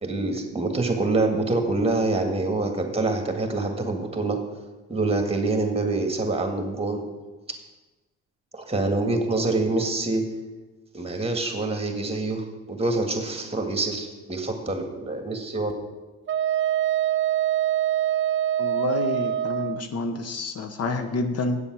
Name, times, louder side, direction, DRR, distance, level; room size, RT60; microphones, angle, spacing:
voice 1, 0.0-4.4 4.9-7.0 8.5-10.2 10.9-15.7, right 2 dB, 20° right, 4 dB, 1.8 m, -26 dB
Wind instrument woodwind instrument, 16.3-19.8, right 11 dB, 40° right, 0.5 m, -24 dB
voice 2, 18.6-21.6, left 3 dB, 55° left, 7 dB, 0.9 m, -28 dB
8.6 x 7.1 x 6.1 m, 1.2 s
cardioid pair, 90°, 30 cm